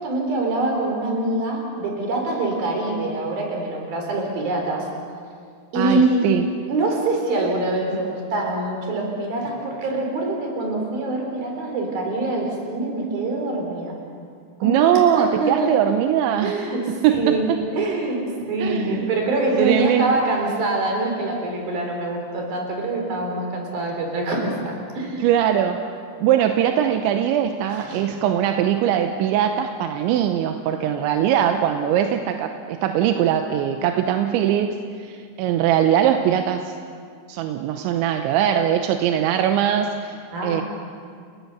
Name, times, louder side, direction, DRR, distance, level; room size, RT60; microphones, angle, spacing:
voice 1, 0.0-4.9 5.7-6.3 6.7-14.0 14.6-15.8 16.4-17.5 17.7-25.2 27.6-28.2 40.3-40.6, right 2 dB, 55° right, 1 dB, 5.7 m, -24 dB
voice 2, 5.8-6.5 14.6-16.6 16.9-17.6 18.6-19.1 19.6-20.2 25.2-36.7 37.3-40.6, right 10 dB, 85° right, 6 dB, 3.2 m, -21 dB
29.5 x 19.0 x 6.9 m, 2.1 s
omnidirectional pair, 5.3 m